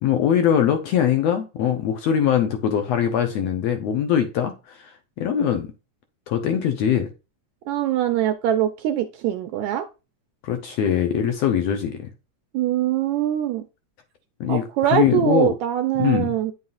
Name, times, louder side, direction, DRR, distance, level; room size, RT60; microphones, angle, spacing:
voice 1, 0.0-4.9 5.2-5.7 6.3-7.1 10.4-12.1 14.4-15.5 16.0-16.4, left 9 dB, 75° left, 1.6 m, -22 dB
voice 2, 7.7-9.9 12.5-13.6 14.5-16.5, right 11 dB, 80° right, 1.7 m, -23 dB
9.4 x 5.5 x 2.5 m
omnidirectional pair, 3.7 m